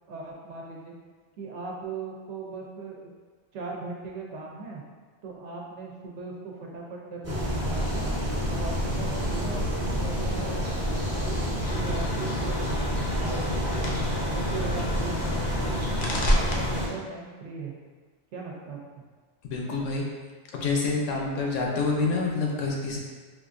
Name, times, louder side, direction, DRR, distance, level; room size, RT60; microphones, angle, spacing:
voice 1, 0.1-0.9 1.4-3.1 3.5-4.8 5.2-8.2 8.5-14.0 14.3-17.7 18.3-18.8, right 3 dB, 70° right, -2 dB, 0.9 m, -39 dB
sound 1, 7.2-16.9, equal, 20° right, 0.5 m, -27 dB
sound 2, 11.6-16.9, left 2 dB, 55° left, 0.6 m, -37 dB
voice 2, 19.4-20.0 20.5-23.0, left 3 dB, 80° left, -1 dB, 1.0 m, -27 dB
4.3 x 2.5 x 2.5 m, 1.5 s
omnidirectional pair, 1.3 m